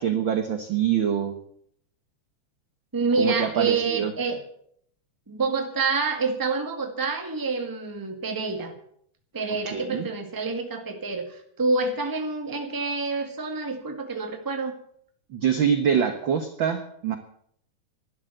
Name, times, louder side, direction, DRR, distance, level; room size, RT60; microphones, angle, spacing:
voice 1, 0.0-1.3 3.2-4.1 9.6-10.1 15.3-17.2, right 8 dB, 60° right, 7 dB, 1.3 m, -25 dB
voice 2, 2.9-4.4 5.3-8.7 9.3-14.8, right 4 dB, 10° right, 4 dB, 1.2 m, -27 dB
12.0 x 12.0 x 7.9 m, 0.67 s
omnidirectional pair, 3.6 m